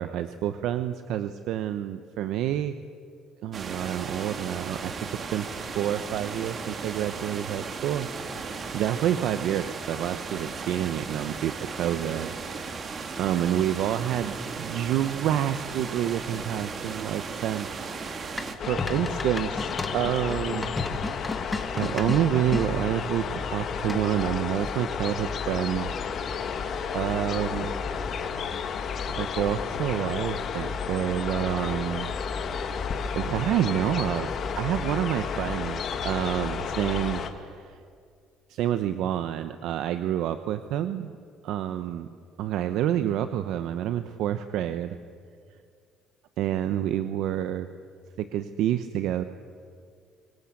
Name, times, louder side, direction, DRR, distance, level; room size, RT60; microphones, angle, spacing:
voice 1, 0.0-2.7 3.4-5.5 5.7-8.1 8.3-17.7 18.0-20.7 21.7-25.9 26.9-27.7 29.1-32.1 33.1-34.3 34.6-37.8 38.5-41.2 41.4-42.1 42.4-45.0 46.4-47.7 48.2-49.2, right 11 dB, 75° right, 10 dB, 0.9 m, -28 dB
sound 1, 3.5-18.6, right 4 dB, 40° right, 2.4 m, -36 dB
sound 2, 18.4-22.7 23.9-24.3, left 2 dB, 15° left, 2.2 m, -33 dB
sound 3, 18.6-37.3, left 6 dB, 55° left, 2.1 m, -32 dB
25.0 x 20.0 x 8.5 m, 2.2 s
supercardioid pair, 90°, 0 cm